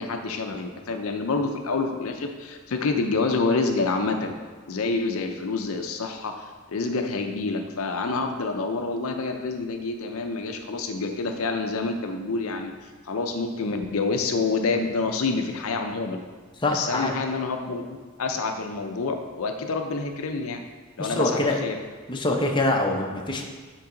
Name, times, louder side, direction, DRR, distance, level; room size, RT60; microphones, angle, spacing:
voice 1, 0.0-4.3 4.7-12.7 13.1-16.2 16.7-17.8 18.2-20.6 21.0-21.8, left 3 dB, 75° left, 5 dB, 0.6 m, -27 dB
voice 2, 16.6-17.2 21.0-21.6 22.1-23.4, left 2 dB, 20° left, 1 dB, 0.7 m, -24 dB
8.6 x 4.6 x 3.8 m, 1.4 s
head